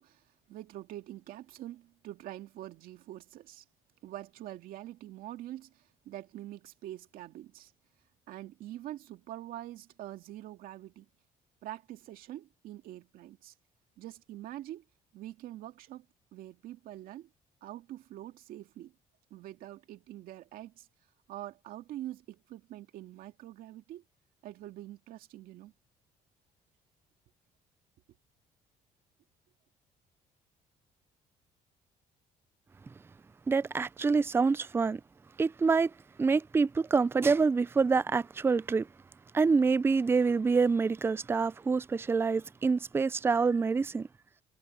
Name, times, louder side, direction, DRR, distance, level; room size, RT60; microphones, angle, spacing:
voice 1, 0.0-3.6 4.0-7.7 8.3-11.1 11.6-13.5 14.0-14.8 15.1-16.1 16.3-17.3 17.6-18.9 19.3-20.9 21.3-24.0 24.4-25.7, right 14 dB, 75° right, 2.3 m, -45 dB
voice 2, 33.5-35.0 35.4-35.9 36.2-38.9 39.3-44.1, right 4 dB, 15° right, 0.4 m, -26 dB
cardioid pair, 100°, 15 cm